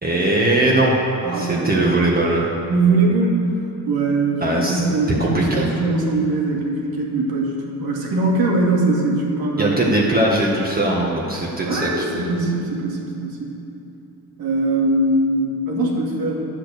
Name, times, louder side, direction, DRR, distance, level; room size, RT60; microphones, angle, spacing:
voice 1, 0.0-0.9 1.3-2.5 4.4-4.8 5.2-5.7 9.6-12.3, right 1 dB, 25° right, -4 dB, 1.7 m, -20 dB
voice 2, 1.2-1.9 2.7-3.5 3.9-9.8 11.6-13.6 14.4-16.4, right 2 dB, 75° right, -2 dB, 2.6 m, -21 dB
11.0 x 7.8 x 6.7 m, 2.8 s
cardioid pair, 95°, 37 cm